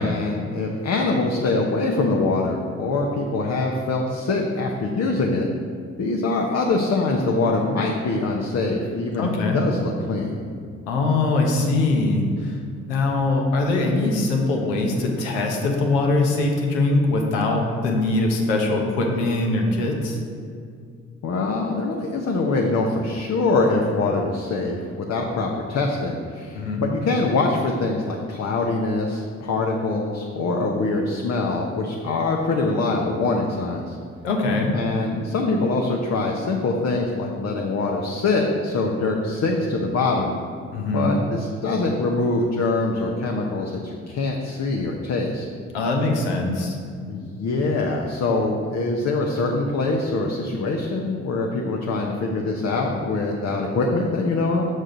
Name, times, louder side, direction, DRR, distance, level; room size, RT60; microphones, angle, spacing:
voice 1, 0.0-5.5 6.0-9.3 9.5-10.4 21.2-34.0 34.7-40.3 40.9-45.4 47.1-54.7, left 3 dB, 50° left, 1 dB, 0.9 m, -24 dB
voice 2, 9.2-9.6 10.9-12.6 12.9-20.2 26.5-26.8 34.2-34.7 40.7-41.1 45.7-46.8, left 2 dB, 85° left, 1 dB, 1.0 m, -22 dB
6.5 x 6.5 x 3.8 m, 2.2 s
hypercardioid pair, 45°, 34 cm